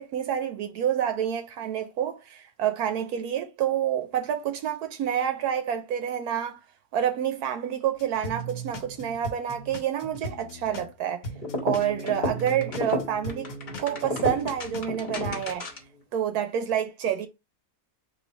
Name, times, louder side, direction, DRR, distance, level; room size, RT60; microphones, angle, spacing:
voice 1, 0.0-6.6 6.9-11.2 11.6-15.7 16.1-17.3, right 9 dB, 80° right, 1.1 m, -28 dB
sound 1, 8.0-10.9 11.2-14.9 15.2-15.5, right 1 dB, 65° left, 1.2 m, -38 dB
sound 2, 11.4-16.0, left 1 dB, 40° left, 0.9 m, -32 dB
3.2 x 2.8 x 3.9 m
omnidirectional pair, 1.6 m